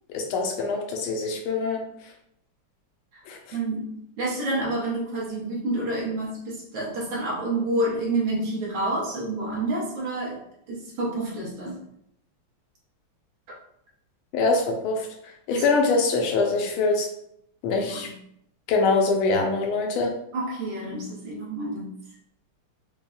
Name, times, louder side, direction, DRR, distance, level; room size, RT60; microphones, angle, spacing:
voice 1, 0.1-1.9 3.3-3.6 14.3-15.1 15.5-17.1 17.6-18.1 18.7-20.2, left 3 dB, 80° left, 2 dB, 1.5 m, -24 dB
voice 2, 3.5-10.4 10.7-11.8 15.5-15.6 17.8-18.1 20.3-21.9, right 2 dB, 65° right, -5 dB, 1.7 m, -28 dB
5.2 x 2.3 x 2.3 m, 0.73 s
omnidirectional pair, 2.4 m